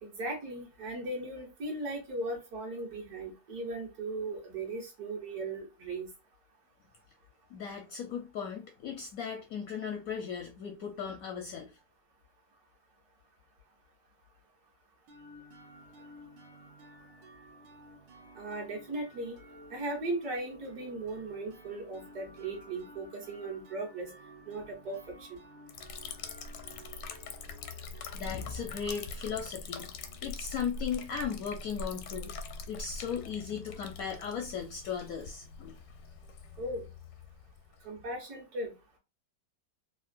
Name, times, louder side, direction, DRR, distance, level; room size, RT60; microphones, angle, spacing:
voice 1, 0.0-6.1 18.3-19.4 19.7-24.1 24.5-25.4 36.6-36.9 37.8-38.7, right 2 dB, 60° right, 1.7 m, -37 dB
voice 2, 7.5-11.8 28.1-32.4 32.7-35.7, left 7 dB, 70° left, 0.8 m, -37 dB
sound 1, 15.1-30.7, right 1 dB, 85° right, 1.5 m, -54 dB
Liquid, 25.7-38.1, left 4 dB, 85° left, 1.3 m, -43 dB
3.6 x 2.4 x 2.5 m
omnidirectional pair, 1.9 m